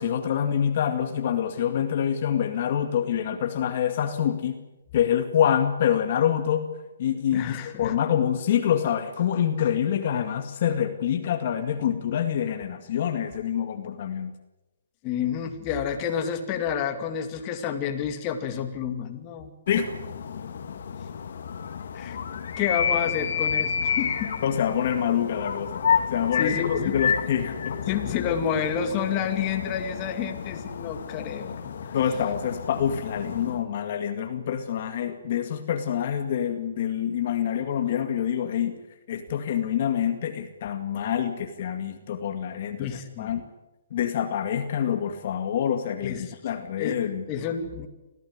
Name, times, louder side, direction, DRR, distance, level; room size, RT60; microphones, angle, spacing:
voice 1, 0.0-4.6 4.9-6.7 7.0-14.3 19.7-19.9 24.4-28.0 31.9-38.8 39.1-43.5 43.9-47.2, left 9 dB, 45° left, 7 dB, 2.1 m, -26 dB
voice 2, 7.3-8.0 15.0-19.5 21.9-22.2 22.6-24.3 26.4-27.0 27.9-32.0 42.8-43.3 46.0-46.3 46.8-47.0 47.3-47.9, left 8 dB, 25° left, 5 dB, 2.5 m, -29 dB
sound 1, 19.7-33.6, left 7 dB, 60° left, 2.7 m, -30 dB
26.0 x 16.0 x 9.7 m, 1.0 s
hypercardioid pair, 160°, 0 cm